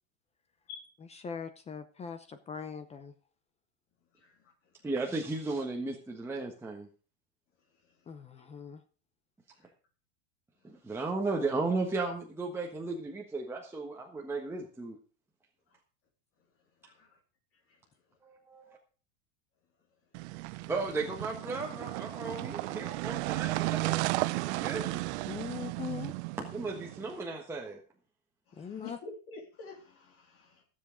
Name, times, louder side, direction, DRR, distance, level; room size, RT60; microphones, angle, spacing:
voice 1, 1.1-3.1 8.1-8.8 25.3-26.1 28.5-29.0, left 6 dB, 15° left, 10 dB, 0.7 m, -41 dB
voice 2, 4.8-6.9 10.6-15.0 18.2-18.8 20.7-25.1 26.5-27.8, right 3 dB, 5° right, -1 dB, 1.3 m, -35 dB
voice 3, 16.8-17.2 28.5-30.6, left 4 dB, 35° left, 3 dB, 3.5 m, -48 dB
sound 1, 20.1-27.1, right 21 dB, 60° right, 0.6 m, -34 dB
15.5 x 7.5 x 5.1 m, 0.38 s
supercardioid pair, 145°, 39 cm